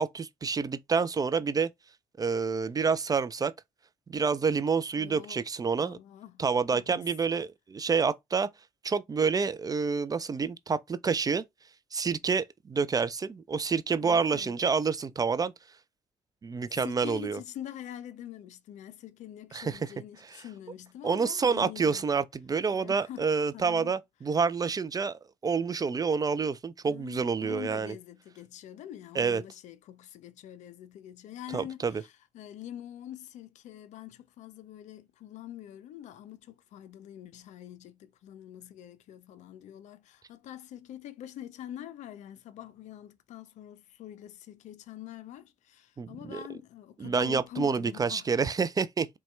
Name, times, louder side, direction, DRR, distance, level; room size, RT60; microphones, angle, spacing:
voice 1, 0.0-1.7 2.2-3.5 4.1-6.0 6.4-8.5 8.8-11.4 11.9-15.5 16.4-17.4 19.5-19.8 21.0-27.9 29.2-29.4 31.5-31.9 46.0-46.4 47.0-49.1, right 5 dB, 25° right, 0.4 m, -28 dB
voice 2, 4.9-5.4 5.8-6.4 6.7-7.1 14.0-14.6 16.7-22.1 22.7-23.3 23.5-24.0 26.8-48.3, left 11 dB, 55° left, 0.5 m, -45 dB
4.1 x 2.3 x 3.1 m
figure-of-eight pair, 45°, 14 cm